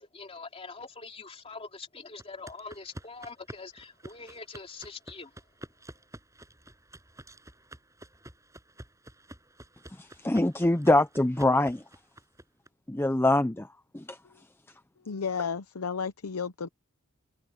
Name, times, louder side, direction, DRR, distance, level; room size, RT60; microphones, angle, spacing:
voice 1, 0.0-5.3, left 4 dB, 25° left, 3.1 m, -44 dB
sound 1, 2.2-12.7, right 1 dB, 15° right, 6.8 m, -50 dB
voice 2, 10.0-11.8 12.9-13.7 13.9-14.2, left 1 dB, 10° left, 0.6 m, -24 dB
voice 3, 15.0-16.7, left 6 dB, 85° left, 0.8 m, -33 dB
head